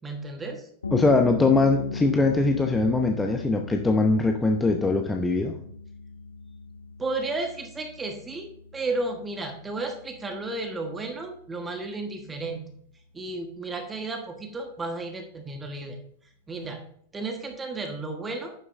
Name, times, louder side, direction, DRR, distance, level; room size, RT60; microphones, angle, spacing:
voice 1, 0.0-0.7 7.0-12.7 13.1-16.0 16.5-16.9 17.1-18.5, right 2 dB, 15° right, 4 dB, 1.3 m, -33 dB
sound 1, 0.8-12.2, left 4 dB, 75° left, 0.7 m, -38 dB
voice 2, 0.9-5.5, left 3 dB, 10° left, 4 dB, 0.8 m, -22 dB
11.0 x 9.3 x 2.6 m, 0.64 s
figure-of-eight pair, 90°, 0 cm